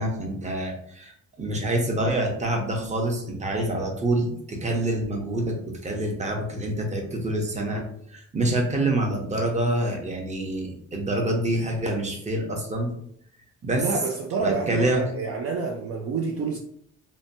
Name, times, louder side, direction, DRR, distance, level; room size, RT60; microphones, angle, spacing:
voice 1, 0.0-7.8 8.1-12.9 13.6-14.0 14.4-15.1, right 1 dB, 25° right, 0.7 m, -26 dB
voice 2, 13.7-16.6, right 5 dB, 50° right, 0.4 m, -29 dB
2.8 x 2.2 x 2.6 m
cardioid pair, 90°, 30 cm